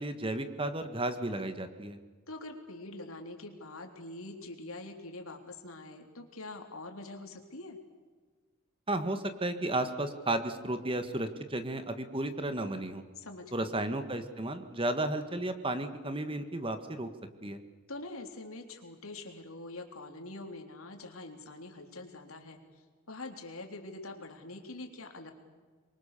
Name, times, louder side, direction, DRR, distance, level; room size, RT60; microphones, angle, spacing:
voice 1, 0.0-2.0 8.9-13.0 13.5-17.1 17.4-17.6, right 1 dB, 25° right, 9 dB, 1.7 m, -33 dB
voice 2, 2.3-7.8 13.2-13.8 17.9-22.6 23.1-25.3, left 2 dB, 85° left, 4 dB, 3.6 m, -44 dB
26.5 x 23.0 x 6.9 m, 1.4 s
head